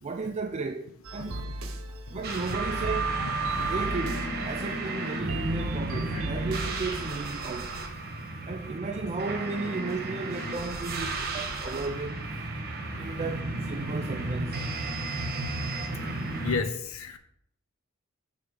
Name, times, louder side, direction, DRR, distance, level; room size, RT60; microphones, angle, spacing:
voice 1, 0.0-1.4 2.1-3.1 3.6-7.8 8.5-12.2 13.0-14.6, right 3 dB, 30° right, 0.3 m, -34 dB
sound 1, 1.0-7.6, right 1 dB, 75° right, 0.9 m, -38 dB
sound 2, 2.2-16.6, right 2 dB, 50° right, 1.2 m, -32 dB
voice 2, 3.2-3.7 5.9-6.0 16.4-17.2, left 4 dB, 70° left, 0.7 m, -33 dB
6.8 x 3.9 x 5.1 m
head